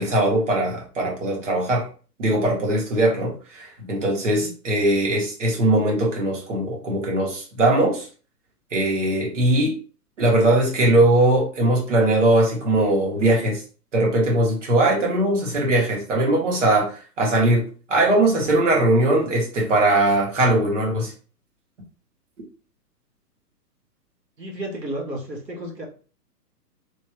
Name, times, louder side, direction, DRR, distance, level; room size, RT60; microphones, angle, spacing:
voice 1, 0.0-1.8 2.2-8.1 8.7-9.8 10.2-13.6 13.9-21.1, right 1 dB, 50° right, -1 dB, 1.4 m, -20 dB
voice 2, 24.4-25.8, right 1 dB, 90° right, 0 dB, 1.3 m, -32 dB
3.1 x 2.9 x 2.3 m, 0.37 s
figure-of-eight pair, 125°, 48 cm